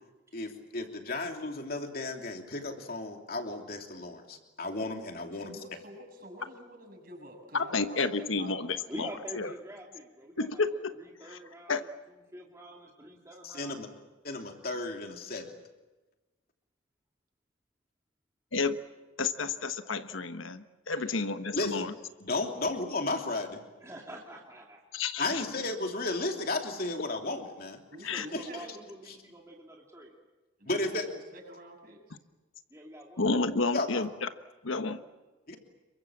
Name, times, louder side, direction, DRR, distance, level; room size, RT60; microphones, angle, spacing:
voice 1, 0.3-5.6 13.4-13.9 14.2-15.5 21.5-21.9 22.2-23.6 25.2-27.8 28.3-28.6 30.7-31.0 33.7-34.1 35.5-35.6, left 2 dB, 50° left, 3 dB, 3.0 m, -34 dB
voice 2, 5.3-8.8 21.0-21.3 25.3-25.8 27.9-28.8 30.6-32.2, right 1 dB, 45° right, 1 dB, 7.0 m, -48 dB
voice 3, 7.5-9.1 9.3-9.5 10.4-10.9 11.7-11.8 18.5-18.8 19.2-21.9 24.9-25.4 28.0-28.3 33.2-34.3 34.6-35.0, left 4 dB, 85° left, 9 dB, 1.2 m, -30 dB
voice 4, 8.9-11.9 12.3-13.9 23.8-24.8 28.1-30.2 32.7-33.3, right 1 dB, 15° right, -1 dB, 2.6 m, -46 dB
28.0 x 23.5 x 7.4 m, 1.1 s
head